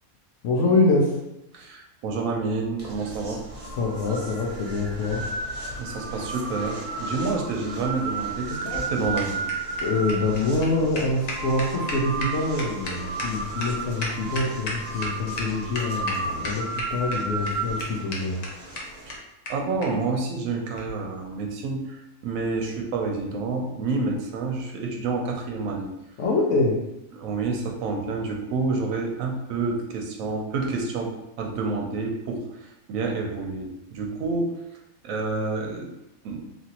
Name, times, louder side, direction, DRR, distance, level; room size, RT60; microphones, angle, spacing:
voice 1, 0.4-1.1 3.8-5.2 9.8-18.4 26.2-26.8, left 2 dB, 65° left, -1 dB, 0.8 m, -25 dB
voice 2, 1.5-3.4 5.8-9.4 19.1-19.2 19.5-25.9 27.1-34.5 35.0-35.9 36.2-36.4, right 3 dB, 75° right, 1 dB, 1.0 m, -29 dB
sound 1, 2.8-19.2, right 3 dB, 40° right, 0.9 m, -33 dB
sound 2, 8.4-15.1 15.4-15.5 15.7-16.1 16.4-17.1 17.5-17.6 17.8-17.9 18.1-18.2 18.4-18.5 18.7-18.8 19.1-19.2 19.4-19.5 19.8-19.9 20.7-20.9, left 2 dB, 90° left, 0.3 m, -33 dB
2.9 x 2.5 x 2.8 m, 0.90 s
omnidirectional pair, 1.5 m